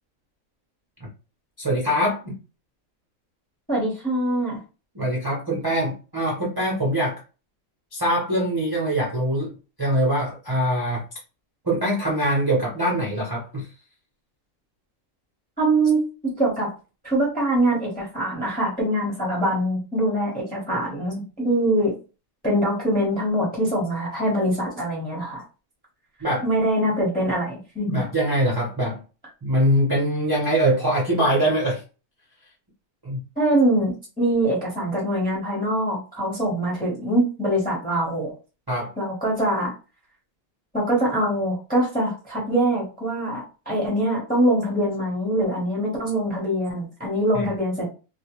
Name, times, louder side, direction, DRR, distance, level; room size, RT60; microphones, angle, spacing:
voice 1, 1.6-2.4 4.9-7.2 7.9-11.0 11.6-13.7 26.2-26.5 27.9-29.0 29.4-31.8 33.0-33.2 38.7-38.9 47.3-47.5, right 1 dB, 25° right, -5 dB, 0.5 m, -23 dB
voice 2, 3.7-4.6 15.6-16.7 17.0-22.0 22.4-25.4 26.4-28.0 33.4-38.3 39.0-39.7 40.7-47.9, right 1 dB, 10° left, -5 dB, 0.8 m, -23 dB
2.4 x 2.2 x 2.9 m, 0.34 s
omnidirectional pair, 1.5 m